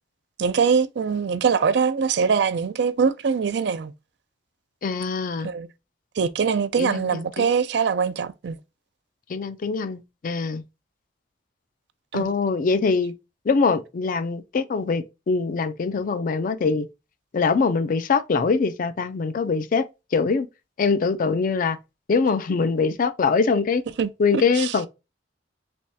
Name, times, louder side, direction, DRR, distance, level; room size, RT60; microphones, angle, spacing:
voice 1, 0.4-3.9 5.4-5.7 6.2-8.6 12.1-12.3 24.0-24.8, right 6 dB, 65° right, 0.4 m, -23 dB
voice 2, 4.8-5.5 6.8-7.5 9.3-10.6 12.1-13.1 13.5-16.9 17.3-19.9 20.1-20.5 20.8-21.8 22.1-23.8 24.2-24.9, left 4 dB, 45° left, 0.4 m, -23 dB
3.5 x 3.0 x 2.6 m
head